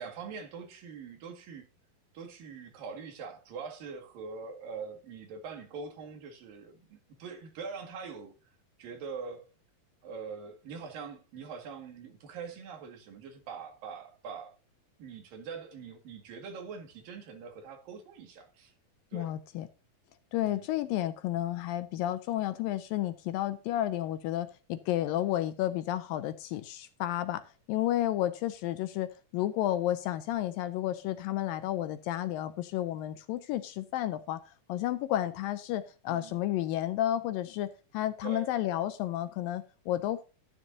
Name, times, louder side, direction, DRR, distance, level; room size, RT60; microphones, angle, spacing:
voice 1, 0.0-1.7 2.1-8.3 8.8-9.5 10.0-14.6 15.0-18.7 19.1-19.4 20.4-20.7 36.1-36.4 38.2-38.5, right 5 dB, 70° right, 3.6 m, -43 dB
voice 2, 19.1-19.7 20.3-40.3, left 13 dB, 80° left, 2.2 m, -32 dB
13.0 x 10.0 x 2.7 m
omnidirectional pair, 4.3 m